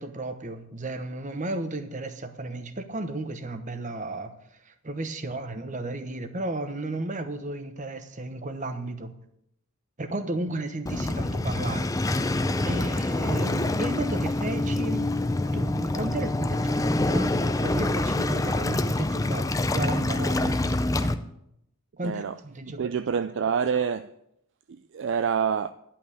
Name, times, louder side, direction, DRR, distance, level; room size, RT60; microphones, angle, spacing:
voice 1, 0.0-4.3 4.7-9.1 10.0-12.2 12.7-15.1 15.5-20.5 22.0-23.2, right 2 dB, 35° right, 0.9 m, -34 dB
Waves surf, 10.9-21.1, left 2 dB, 15° left, 0.4 m, -26 dB
voice 2, 22.0-22.3 22.8-24.1 24.9-25.7, right 7 dB, 55° right, 0.3 m, -26 dB
11.0 x 5.8 x 8.3 m
head